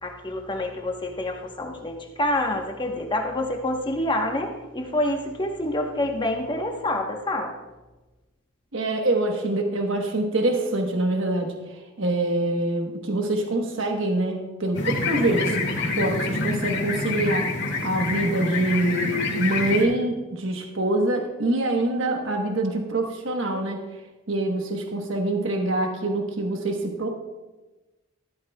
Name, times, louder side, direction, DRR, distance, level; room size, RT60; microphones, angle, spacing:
voice 1, 0.0-7.5, left 1 dB, 25° left, 2 dB, 1.1 m, -27 dB
voice 2, 8.7-17.5 17.8-23.8 24.3-27.1, right 2 dB, 70° right, 2 dB, 1.2 m, -25 dB
sound 1, 14.7-19.8, left 3 dB, 55° left, 1.8 m, -27 dB
14.5 x 12.5 x 2.3 m, 1.1 s
head